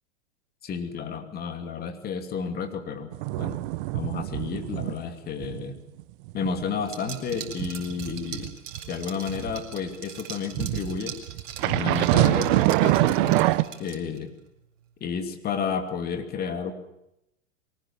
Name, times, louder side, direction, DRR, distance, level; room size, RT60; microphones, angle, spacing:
voice 1, 0.6-3.6 3.9-5.8 6.3-8.5 8.9-11.1 11.6-13.5 13.8-14.3 15.0-16.7, left 6 dB, 25° left, 6 dB, 2.8 m, -31 dB
sound 1, 3.1-5.0 5.4-5.6 6.0-9.6 10.5-13.6, right 18 dB, 45° right, 1.0 m, -25 dB
Liquid, 6.8-14.2, right 8 dB, 70° right, 4.3 m, -41 dB
23.0 x 18.5 x 7.3 m, 0.83 s
hypercardioid pair, 125°, 39 cm